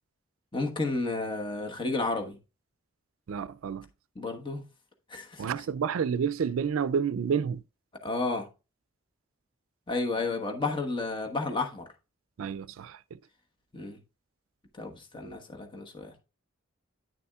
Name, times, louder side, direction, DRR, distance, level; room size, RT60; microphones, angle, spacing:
voice 1, 0.5-2.4 4.2-4.6 5.1-5.5 8.0-8.5 9.9-11.8 13.7-14.0 14.8-16.1, left 3 dB, 25° left, 1.2 m, -32 dB
voice 2, 3.3-3.9 5.4-7.6 12.4-13.2, right 7 dB, 85° right, 0.4 m, -30 dB
10.0 x 6.9 x 2.3 m
head